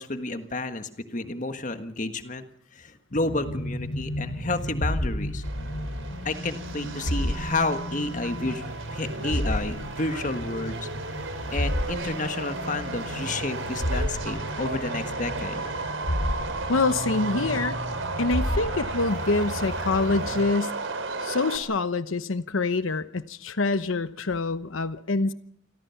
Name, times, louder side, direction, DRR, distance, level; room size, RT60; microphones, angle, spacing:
voice 1, 0.0-2.4 2.7-5.4 6.2-10.9 11.5-16.1, left 2 dB, 40° left, 8 dB, 1.6 m, -31 dB
sound 1, 3.1-20.4, equal, 70° left, 8.0 m, -32 dB
Subway metro underground, 5.4-21.6, right 3 dB, 80° right, 3.7 m, -34 dB
voice 2, 16.7-17.8 18.2-20.7 21.2-25.3, left 3 dB, 85° left, 12 dB, 1.0 m, -26 dB
28.0 x 21.5 x 5.9 m, 0.69 s
head